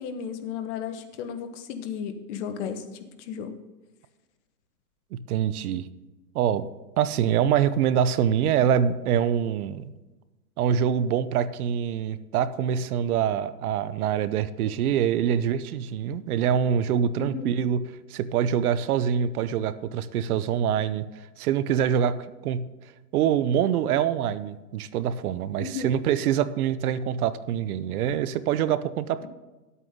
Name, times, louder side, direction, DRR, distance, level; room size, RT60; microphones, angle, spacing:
voice 1, 0.0-3.5 17.2-17.5 25.6-26.0 29.2-29.3, left 7 dB, 50° left, 8 dB, 1.3 m, -34 dB
voice 2, 5.1-5.8 6.3-6.7 7.0-9.9 10.6-17.8 18.1-21.0 21.4-22.2 22.4-22.6 23.1-29.3, right 9 dB, 70° right, 15 dB, 0.8 m, -25 dB
11.0 x 8.2 x 3.7 m, 1.1 s
hypercardioid pair, 135°, 46 cm